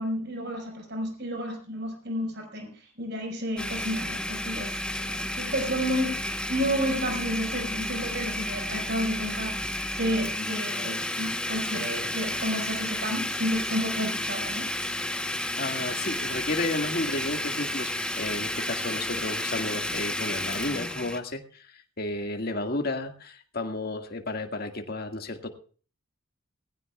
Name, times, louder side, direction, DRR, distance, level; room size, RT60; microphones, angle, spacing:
voice 1, 0.0-2.7 3.0-14.7, equal, 55° right, 3 dB, 5.5 m, -31 dB
Domestic sounds home sounds, 3.6-21.2, left 1 dB, 5° left, 1.0 m, -31 dB
voice 2, 15.6-21.4 22.0-25.5, left 2 dB, 45° left, 5 dB, 2.0 m, -32 dB
20.0 x 16.5 x 2.4 m, 0.41 s
head